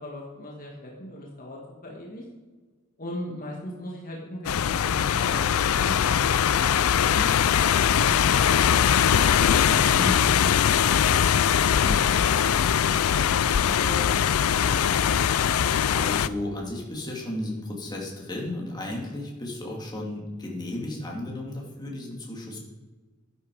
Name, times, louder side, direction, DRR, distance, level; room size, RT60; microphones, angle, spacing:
voice 1, 0.0-2.2 3.0-6.0 13.5-14.0 14.7-14.9, left 1 dB, 45° left, -2 dB, 1.9 m, -40 dB
sound 1, 4.4-16.3, left 8 dB, 80° left, 0.4 m, -21 dB
voice 2, 9.7-10.3 15.9-22.6, left 1 dB, 20° left, -2 dB, 2.7 m, -34 dB
12.0 x 11.0 x 4.9 m, 1.4 s
head